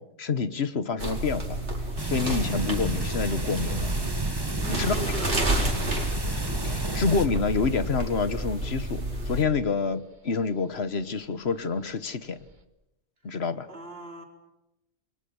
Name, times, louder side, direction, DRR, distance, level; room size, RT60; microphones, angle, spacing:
voice 1, 0.0-1.6 2.0-3.9 4.7-5.3 6.6-12.4 13.2-13.7, left 4 dB, 65° left, 13 dB, 1.5 m, -28 dB
sound 1, 1.0-9.4, right 1 dB, 80° right, 4.7 m, -30 dB
sound 2, 1.8-12.6, right 2 dB, 45° right, 1.8 m, -41 dB
sound 3, 2.0-7.3, right 2 dB, 20° right, 1.6 m, -33 dB
voice 2, 4.6-5.5 13.7-14.2, equal, 60° right, 3 dB, 4.5 m, -38 dB
28.0 x 22.5 x 7.1 m, 0.95 s
omnidirectional pair, 1.2 m